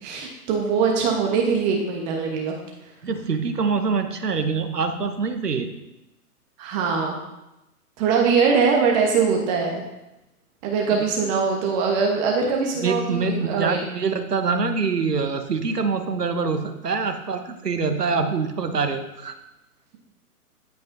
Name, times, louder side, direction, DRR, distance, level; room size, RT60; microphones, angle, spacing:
voice 1, 0.0-2.6 6.6-7.2 8.0-9.8 10.6-13.8, right 5 dB, 30° right, 0 dB, 1.1 m, -22 dB
voice 2, 3.0-5.7 12.8-19.3, right 4 dB, 90° right, 7 dB, 1.1 m, -25 dB
15.0 x 5.2 x 2.6 m, 0.94 s
figure-of-eight pair, 125°, 46 cm